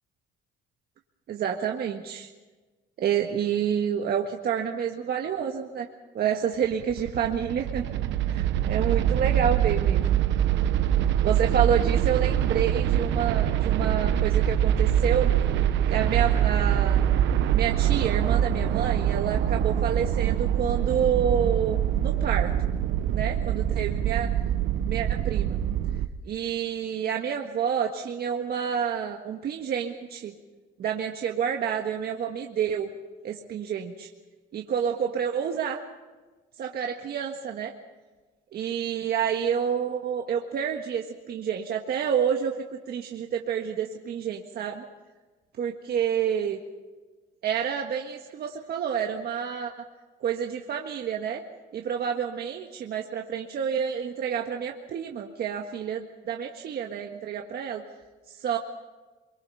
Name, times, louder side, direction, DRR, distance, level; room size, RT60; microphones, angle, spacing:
voice 1, 1.3-2.3 3.0-5.9 6.1-7.8 8.3-10.2 11.2-15.3 15.9-17.1 17.5-22.5 23.1-24.3 24.8-25.6 26.2-30.3 30.8-32.9 33.2-34.1 34.5-35.8 36.6-37.7 38.5-44.8 45.6-46.6 47.4-49.7 50.2-51.4 51.7-57.8 58.3-58.6, right 8 dB, 55° right, 2 dB, 1.6 m, -29 dB
sound 1, 6.6-26.1, right 10 dB, 75° right, 1.1 m, -24 dB
24.5 x 23.5 x 5.6 m, 1.3 s
cardioid pair, 110°, 19 cm